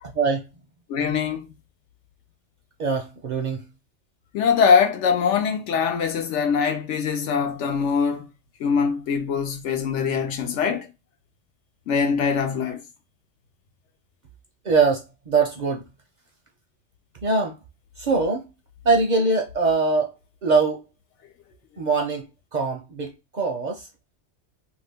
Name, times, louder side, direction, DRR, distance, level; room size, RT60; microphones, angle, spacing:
voice 1, 0.0-0.5 2.8-3.6 14.6-15.9 17.2-17.6 18.0-18.5 18.8-20.1 20.4-20.8 21.8-23.9, right 4 dB, 50° right, 0.6 m, -23 dB
voice 2, 0.9-1.5 4.3-8.3 8.6-10.9 11.9-12.8, left 6 dB, 80° left, 1.0 m, -22 dB
2.6 x 2.3 x 3.4 m
omnidirectional pair, 1.2 m